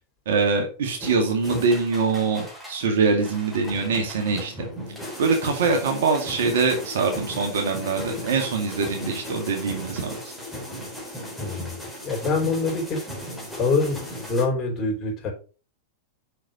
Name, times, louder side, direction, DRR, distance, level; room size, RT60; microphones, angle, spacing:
voice 1, 0.3-4.7 5.2-10.1, right 4 dB, 65° right, 4 dB, 2.1 m, -23 dB
sound 1, 1.0-2.8 3.2-14.5, left 1 dB, ahead, 3.6 m, -36 dB
voice 2, 11.4-11.7 12.0-13.0 13.6-14.0 14.3-15.3, left 3 dB, 30° left, 0 dB, 4.5 m, -24 dB
6.3 x 6.3 x 5.2 m, 0.36 s
hypercardioid pair, 100°, 0 cm